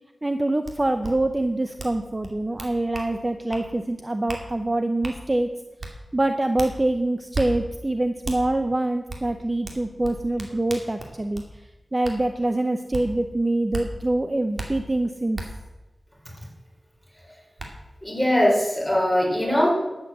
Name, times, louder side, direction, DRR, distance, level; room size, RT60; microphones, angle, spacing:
voice 1, 0.2-5.5 6.1-11.4 11.9-15.4, right 2 dB, 25° right, 7 dB, 0.6 m, -25 dB
sound 1, 0.6-0.7 1.0-1.1 1.8-2.0 2.2-3.1 3.5-3.7 4.3-4.4 5.0-5.2 5.8-5.9 6.6-6.7 7.3-7.5 8.2-8.4 9.1-9.2 9.6-11.5 12.0-12.2 12.9-13.0 13.7-13.9 14.6-14.7 15.3-15.5 17.0-17.1 17.6-17.7, right 2 dB, 50° right, 2.3 m, -34 dB
voice 2, 18.0-19.7, left 1 dB, ahead, -3 dB, 4.1 m, -21 dB
12.0 x 8.1 x 7.6 m, 1.1 s
wide cardioid pair, 90°, 0 cm